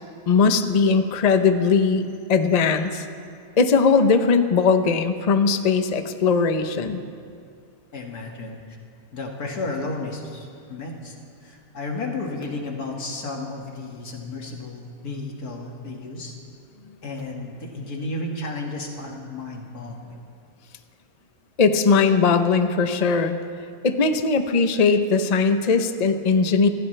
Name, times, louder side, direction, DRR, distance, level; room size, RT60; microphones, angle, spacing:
voice 1, 0.3-3.0 3.6-7.0 21.6-23.4 23.8-26.7, left 5 dB, 35° left, 8 dB, 0.7 m, -19 dB
voice 2, 7.9-8.6 9.1-11.1 11.4-16.3 17.0-20.2, left 2 dB, 85° left, 0 dB, 2.5 m, -33 dB
25.5 x 16.5 x 3.3 m, 2.3 s
omnidirectional pair, 1.6 m